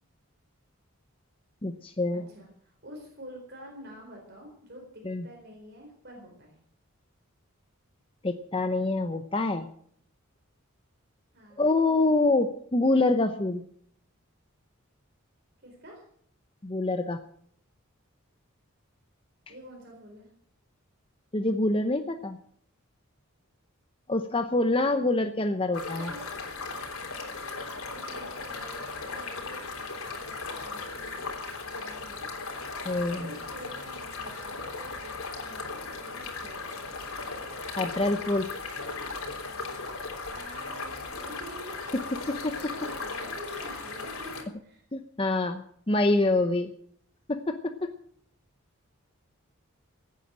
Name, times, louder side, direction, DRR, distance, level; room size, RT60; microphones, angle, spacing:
voice 1, 1.6-2.3 5.0-5.2 8.2-9.7 11.6-13.6 16.6-17.2 21.3-22.4 24.1-26.1 32.8-33.3 37.8-38.5 42.3-42.7 44.9-46.7 47.3-47.9, left 2 dB, 25° left, 7 dB, 0.7 m, -26 dB
voice 2, 2.1-6.6 11.3-11.6 15.6-16.0 19.5-20.3 25.9-26.4 27.8-29.7 30.1-31.2 31.7-32.3 33.2-35.8 36.1-36.8 40.3-41.9 42.6-44.8, equal, 50° right, 0 dB, 4.3 m, -47 dB
sound 1, 25.7-44.4, left 3 dB, 85° left, 3.5 m, -37 dB
16.5 x 9.7 x 7.4 m, 0.63 s
head